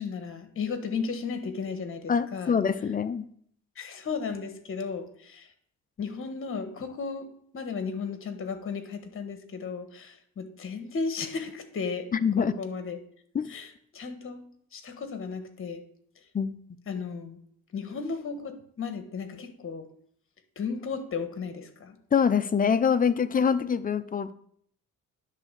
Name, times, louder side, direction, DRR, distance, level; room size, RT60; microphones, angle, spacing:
voice 1, 0.0-2.6 3.8-5.5 6.0-12.1 12.4-13.0 13.5-14.4 14.7-15.8 16.9-17.4 17.7-19.9 20.6-22.0, left 5 dB, 45° left, 8 dB, 1.4 m, -35 dB
voice 2, 2.1-3.2 12.1-12.5 13.3-13.5 16.3-16.5 22.1-24.3, left 6 dB, 30° left, 12 dB, 0.6 m, -24 dB
10.5 x 3.6 x 6.7 m, 0.64 s
cardioid pair, 90°, 30 cm